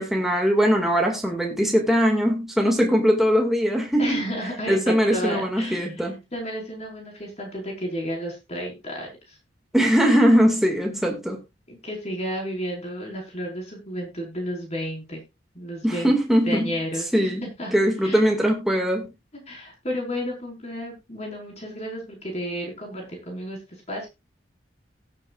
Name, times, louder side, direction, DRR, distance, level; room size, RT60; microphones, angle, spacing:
voice 1, 0.0-4.2 4.7-6.2 9.7-11.4 15.8-16.7 17.1-17.4 17.7-19.1, equal, ahead, 2.1 m, -21 dB
voice 2, 4.0-5.9 6.3-9.3 11.7-15.2 15.5-16.1 16.4-17.3 17.6-17.7 18.0-18.2 19.3-23.6 23.9-24.1, equal, 35° left, 4.8 m, -32 dB
17.0 x 8.5 x 2.5 m
head